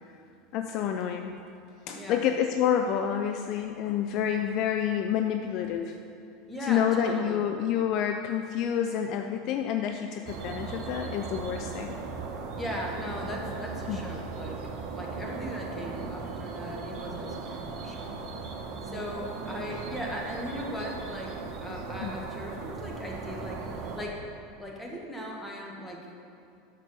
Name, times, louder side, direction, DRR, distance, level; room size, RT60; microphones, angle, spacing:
voice 1, 0.5-1.3 1.9-6.0 6.6-12.0 13.9-14.0 22.0-22.2, left 9 dB, 45° left, 5 dB, 0.5 m, -28 dB
voice 2, 1.9-2.3 6.5-7.4 12.6-14.6 14.9-18.1 18.9-21.3 21.6-24.2 24.6-26.0, equal, 10° left, -2 dB, 1.8 m, -38 dB
sound 1, 10.3-24.1, right 4 dB, 45° right, 1.1 m, -37 dB
9.3 x 6.6 x 5.5 m, 2.7 s
figure-of-eight pair, 80°, 0 cm